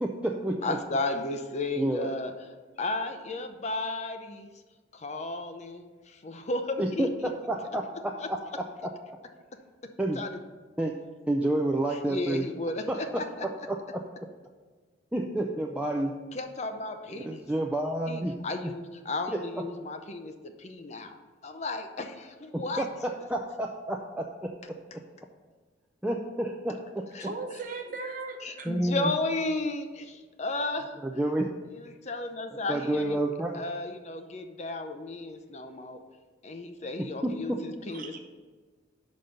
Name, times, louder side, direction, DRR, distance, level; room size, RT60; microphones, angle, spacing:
voice 1, 0.0-0.8 1.8-2.1 6.8-7.1 7.5-8.4 8.8-8.9 10.0-10.2 10.8-11.0 11.3-12.5 12.9-13.0 13.4-14.0 15.1-16.1 17.2-18.3 18.6-18.7 19.3-19.4 22.5-24.5 26.0-27.1 28.7-29.1 31.0-31.5 32.7-33.6 37.2-37.6, right 1 dB, 5° right, 0 dB, 0.4 m, -29 dB
voice 2, 0.6-2.3 2.8-4.5 4.9-7.1 8.2-8.3 10.1-10.4 11.9-13.5 16.3-17.5 18.1-21.2 21.4-22.9 27.1-27.3 28.4-30.9 31.8-33.2 33.5-36.0 36.4-38.1, left 2 dB, 40° left, 6 dB, 0.6 m, -34 dB
voice 3, 27.2-28.7 37.9-38.2, right 3 dB, 50° right, 3 dB, 1.0 m, -37 dB
5.7 x 5.3 x 6.4 m, 1.4 s
head